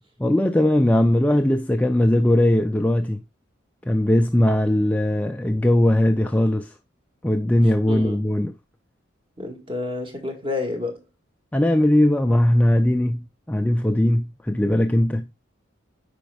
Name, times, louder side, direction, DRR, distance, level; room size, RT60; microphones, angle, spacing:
voice 1, 0.2-3.2 3.9-6.7 7.2-8.5 11.5-15.3, left 1 dB, 5° left, 0.4 m, -19 dB
voice 2, 7.9-8.2 9.4-11.0, left 3 dB, 25° right, 1.7 m, -29 dB
8.9 x 5.1 x 2.3 m
head